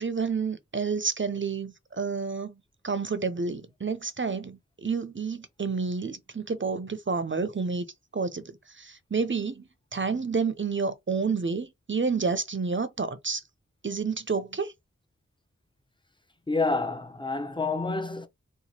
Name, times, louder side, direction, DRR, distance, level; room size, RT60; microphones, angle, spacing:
voice 1, 0.0-7.9 8.1-13.4 13.8-14.7, right 5 dB, 40° right, 0.6 m, -30 dB
voice 2, 16.5-18.3, left 3 dB, 15° left, 0.7 m, -28 dB
2.9 x 2.3 x 4.2 m
cardioid pair, 40°, 30 cm